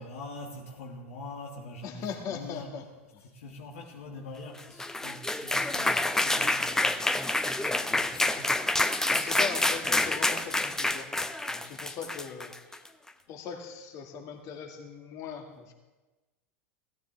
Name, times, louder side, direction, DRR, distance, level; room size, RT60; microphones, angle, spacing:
voice 1, 0.0-2.8 3.3-7.1 7.6-8.6 9.8-9.9, left 2 dB, 70° left, 0 dB, 1.8 m, -44 dB
voice 2, 1.8-2.8 3.1-3.3 8.9-12.8 13.3-15.7, left 6 dB, 45° left, 3 dB, 2.1 m, -40 dB
sound 1, 4.6-12.9, left 2 dB, 5° left, 0.6 m, -28 dB
16.5 x 13.0 x 3.4 m, 1.2 s
hypercardioid pair, 90°, 8 cm